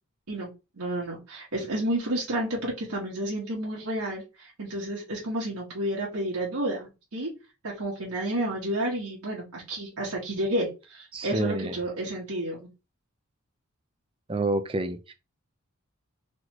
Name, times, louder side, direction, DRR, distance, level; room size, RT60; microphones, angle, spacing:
voice 1, 0.8-7.3 7.6-12.7, right 1 dB, 85° right, 1.5 m, -31 dB
voice 2, 11.1-11.8 14.3-15.1, right 2 dB, 25° right, 0.4 m, -28 dB
4.1 x 3.1 x 3.0 m
head